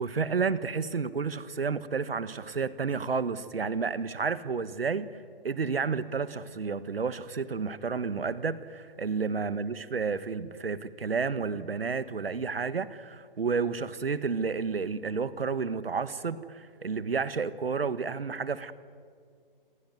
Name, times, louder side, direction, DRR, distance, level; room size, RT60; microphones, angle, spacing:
voice 1, 0.0-5.1 5.4-18.7, right 5 dB, 75° right, 15 dB, 1.6 m, -31 dB
28.5 x 22.5 x 9.3 m, 2.1 s
figure-of-eight pair, 135°, 29 cm